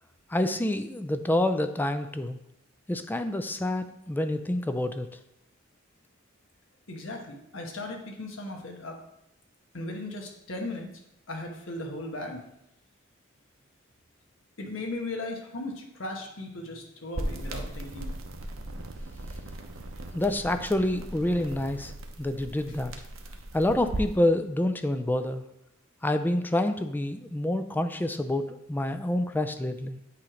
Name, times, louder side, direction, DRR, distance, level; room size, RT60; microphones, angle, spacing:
voice 1, 0.3-2.4 2.9-5.1 20.1-21.9 22.2-22.9 23.5-25.4 26.0-30.0, left 1 dB, 10° left, 8 dB, 0.3 m, -27 dB
voice 2, 6.9-9.0 9.7-10.9 11.3-12.4 14.6-18.4, left 2 dB, 70° left, 2 dB, 1.3 m, -37 dB
sound 1, 17.1-24.2, right 1 dB, 75° right, 0.8 m, -38 dB
8.4 x 3.1 x 5.0 m, 0.82 s
head